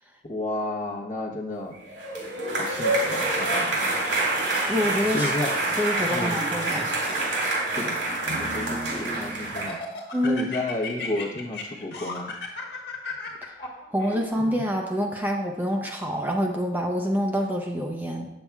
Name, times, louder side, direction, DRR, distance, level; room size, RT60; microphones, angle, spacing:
voice 1, 0.2-1.7 2.6-3.8 5.1-5.5 6.1-6.4 7.8-8.0 8.4-9.8 10.2-12.3, left 2 dB, 45° left, 0 dB, 0.9 m, -32 dB
sound 1, 1.9-9.7, right 2 dB, 85° right, 2.3 m, -26 dB
voice 2, 4.7-5.3 5.8-6.9 10.1-10.5 13.9-18.3, equal, 10° right, 1 dB, 0.5 m, -26 dB
Laughter, 6.1-7.4 8.0-9.1 9.6-14.6, left 3 dB, 65° left, 1.4 m, -37 dB
8.4 x 7.0 x 2.3 m, 0.90 s
head